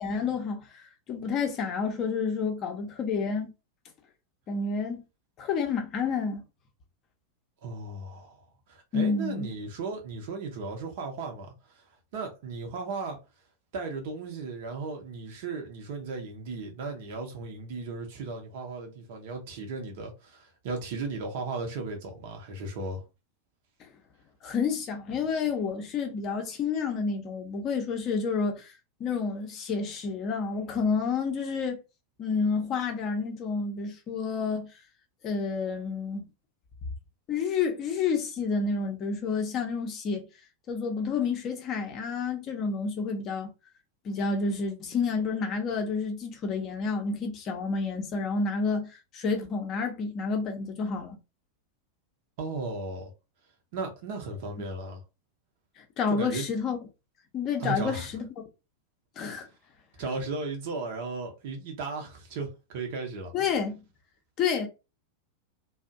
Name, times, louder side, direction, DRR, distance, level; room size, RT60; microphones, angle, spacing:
voice 1, 0.0-3.5 4.5-5.0 5.4-6.4 8.9-9.5 23.8-23.9 24.4-28.7 29.0-31.8 32.2-34.7 35.2-36.3 37.3-40.2 40.7-43.5 44.0-51.2 55.8-56.8 57.3-58.3 59.2-59.5 63.3-63.8 64.4-64.7, left 5 dB, 35° left, 0.6 m, -29 dB
voice 2, 7.6-11.8 12.1-13.2 13.7-23.0 52.4-53.1 53.7-55.0 56.1-56.4 57.6-58.1 60.0-63.3, right 3 dB, 50° right, 0.7 m, -36 dB
2.5 x 2.0 x 2.4 m
figure-of-eight pair, 90°, 0 cm